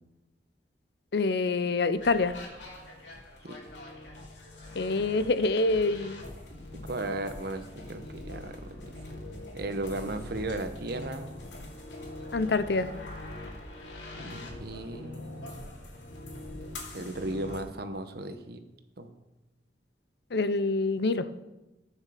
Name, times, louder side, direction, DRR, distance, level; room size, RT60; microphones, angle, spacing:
voice 1, 1.1-2.4 4.8-6.2 12.3-12.9 20.3-21.3, left 3 dB, 65° left, 13 dB, 0.6 m, -26 dB
sound 1, 1.9-17.6, left 1 dB, 85° left, 2.9 m, -43 dB
voice 2, 6.8-8.9 9.5-11.3 14.2-15.6 16.9-18.6 19.0-19.1, right 2 dB, 60° right, 8 dB, 1.1 m, -36 dB
19.5 x 6.6 x 5.0 m, 1.0 s
head